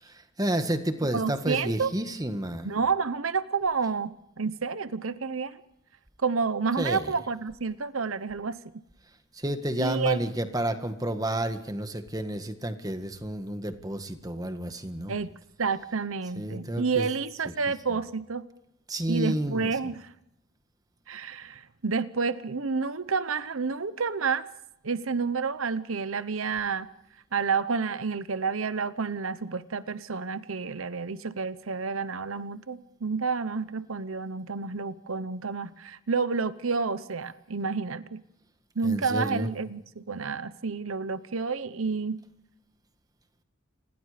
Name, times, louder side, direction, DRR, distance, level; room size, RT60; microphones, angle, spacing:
voice 1, 0.0-2.7 6.7-7.3 9.3-15.1 16.4-17.1 17.4-18.0 18.9-19.8 38.8-39.5, right 1 dB, 20° right, 1.7 m, -31 dB
voice 2, 1.1-1.9 2.6-5.6 6.2-8.6 9.8-10.2 15.1-15.3 15.6-18.5 19.1-20.1 21.1-24.5 24.8-26.9 27.3-38.2 38.8-42.2, right 5 dB, 90° right, 1.0 m, -29 dB
29.0 x 21.5 x 5.1 m
head